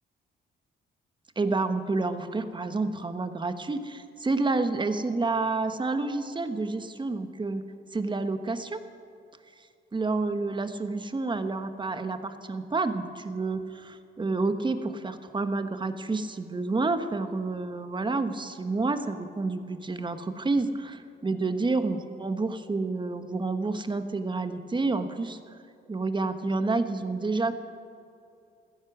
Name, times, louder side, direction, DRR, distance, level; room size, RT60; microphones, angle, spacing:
voice 1, 1.4-7.6 7.9-8.8 9.9-25.4 25.9-27.6, right 3 dB, 25° right, 9 dB, 1.2 m, -29 dB
16.5 x 14.0 x 6.1 m, 2.5 s
cardioid pair, 90°, 20 cm